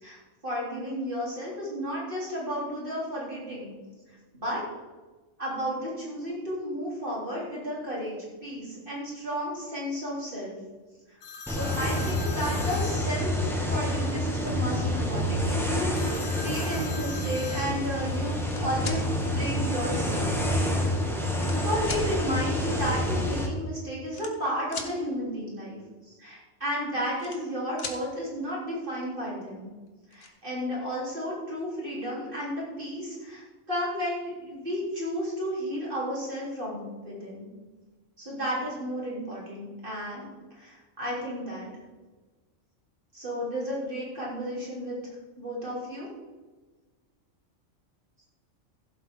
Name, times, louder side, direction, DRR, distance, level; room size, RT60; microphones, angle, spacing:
voice 1, 0.0-3.7 4.1-4.6 5.4-10.6 11.1-11.2 11.5-20.6 21.5-29.7 30.1-37.5 38.2-41.7 43.1-45.0 45.4-46.1, equal, 45° right, -6 dB, 4.1 m, -33 dB
sound 1, 11.2-13.8 15.9-17.7, left 5 dB, 75° left, 1.5 m, -41 dB
sound 2, 11.5-23.5, left 1 dB, ahead, 1.7 m, -28 dB
sound 3, 18.2-19.0 20.0-20.1 20.9-21.6 21.8-22.1 23.2-23.3 23.5-23.7 24.1-24.9 26.8-27.5 27.8-28.0 29.5-29.6 29.9-30.3, left 4 dB, 55° left, 1.4 m, -39 dB
15.5 x 7.9 x 3.9 m, 1.3 s
omnidirectional pair, 1.3 m